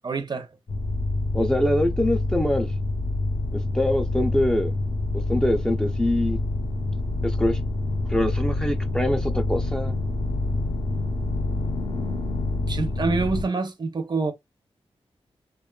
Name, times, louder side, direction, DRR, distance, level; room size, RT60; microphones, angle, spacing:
voice 1, 0.0-0.5 12.7-14.3, right 3 dB, 45° right, 0.6 m, -26 dB
sound 1, 0.7-13.4, left 2 dB, 55° left, 0.6 m, -27 dB
voice 2, 1.3-2.7 3.5-4.7 5.3-6.4 7.2-7.6 8.1-10.0, left 1 dB, 5° left, 0.3 m, -24 dB
2.9 x 2.2 x 2.2 m
wide cardioid pair, 100°, 11 cm